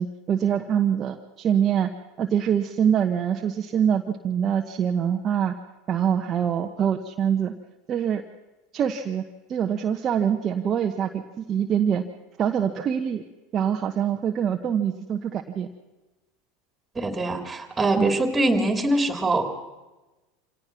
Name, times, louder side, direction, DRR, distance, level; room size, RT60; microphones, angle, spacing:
voice 1, 0.0-1.9 2.2-5.5 5.9-7.5 7.9-8.2 8.7-9.2 9.5-12.0 12.4-13.2 13.5-15.7 17.9-18.1, right 8 dB, 35° right, 4 dB, 1.1 m, -24 dB
voice 2, 16.9-19.4, right 2 dB, 15° right, 6 dB, 3.1 m, -23 dB
26.0 x 17.5 x 6.0 m, 1.1 s
hypercardioid pair, 90°, 0 cm